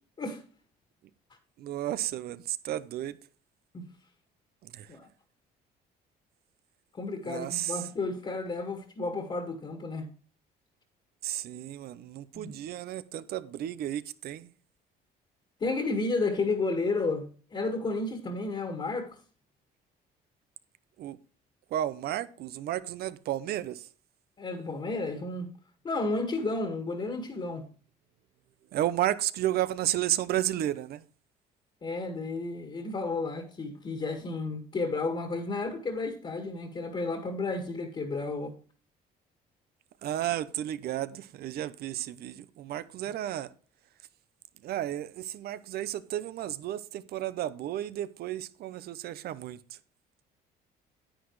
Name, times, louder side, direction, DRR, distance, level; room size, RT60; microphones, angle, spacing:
voice 1, 1.6-3.2 4.6-4.9 7.2-7.8 11.2-14.5 21.0-21.2 21.7-23.9 28.7-31.0 40.0-43.5 44.6-49.6, right 12 dB, 70° right, 0.8 m, -32 dB
voice 2, 7.0-10.1 12.3-12.5 15.6-19.2 24.4-25.5 25.8-27.7 31.8-38.5, left 3 dB, 30° left, 2.0 m, -32 dB
10.0 x 9.4 x 3.2 m
cardioid pair, 110°, 17 cm